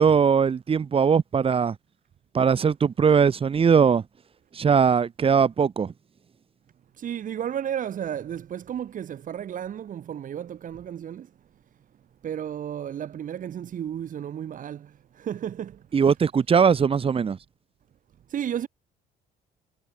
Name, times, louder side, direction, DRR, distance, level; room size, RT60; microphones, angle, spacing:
voice 1, 0.0-1.8 2.3-4.0 4.5-5.9 15.9-17.4, right 6 dB, 30° right, 4.4 m, -20 dB
voice 2, 7.0-11.3 12.2-14.9 15.2-15.8 18.3-18.7, right 9 dB, 45° right, 3.8 m, -33 dB
cardioid pair, 150°, 18 cm